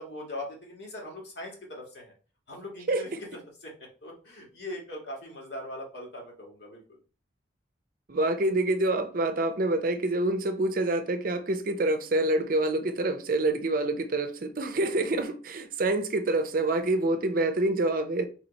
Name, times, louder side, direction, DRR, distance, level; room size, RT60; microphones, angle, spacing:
voice 1, 0.0-2.1 2.5-3.3 3.6-7.0, left 1 dB, 70° left, 1.7 m, -41 dB
voice 2, 2.9-3.2 8.1-18.2, right 2 dB, 50° right, 0.5 m, -27 dB
4.0 x 3.0 x 4.0 m
head